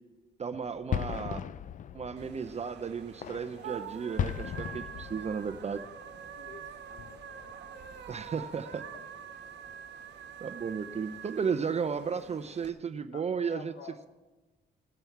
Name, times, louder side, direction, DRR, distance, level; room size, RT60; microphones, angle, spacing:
voice 1, 0.4-1.4 1.9-5.8 8.1-8.8 10.4-13.7, right 6 dB, 35° right, 10 dB, 0.5 m, -34 dB
sound 1, 0.5-8.5 8.7-9.2 9.6-9.8 10.1-10.2 10.7-11.1, left 9 dB, 40° left, 0.4 m, -39 dB
sound 2, 2.2-12.7, right 7 dB, 60° right, 1.2 m, -46 dB
voice 2, 5.0-5.4 6.4-7.6 8.3-8.5 8.9-9.1 13.1-14.0, left 5 dB, 65° left, 8 dB, 1.1 m, -51 dB
17.5 x 6.9 x 4.6 m, 1.2 s
cardioid pair, 90°, 20 cm